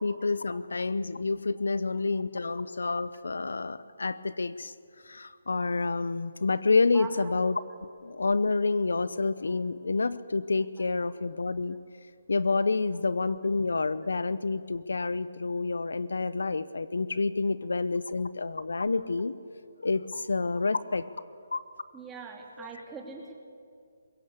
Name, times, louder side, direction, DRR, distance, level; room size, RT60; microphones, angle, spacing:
voice 1, 0.0-4.7 5.1-7.5 8.0-11.8 12.3-19.4 19.8-21.1 21.5-21.6, left 3 dB, 80° left, 16 dB, 0.8 m, -28 dB
voice 2, 6.9-7.3 9.5-9.6 20.1-20.2 21.9-23.3, right 5 dB, 10° right, 0 dB, 2.8 m, -42 dB
22.0 x 17.5 x 8.2 m, 2.3 s
hypercardioid pair, 155°, 0 cm